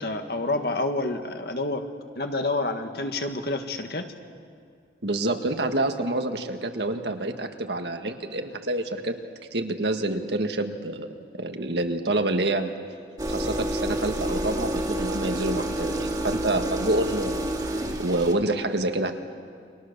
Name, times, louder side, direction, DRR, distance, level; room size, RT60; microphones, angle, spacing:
voice 1, 0.0-1.8 2.1-4.1, left 2 dB, 60° left, 6 dB, 1.7 m, -28 dB
voice 2, 5.0-9.2 9.5-11.1 11.3-12.7 13.3-19.1, right 2 dB, 75° right, 6 dB, 1.7 m, -27 dB
sound 1, 13.2-18.3, right 1 dB, 20° right, 2.1 m, -29 dB
30.0 x 23.5 x 6.8 m, 2.2 s
head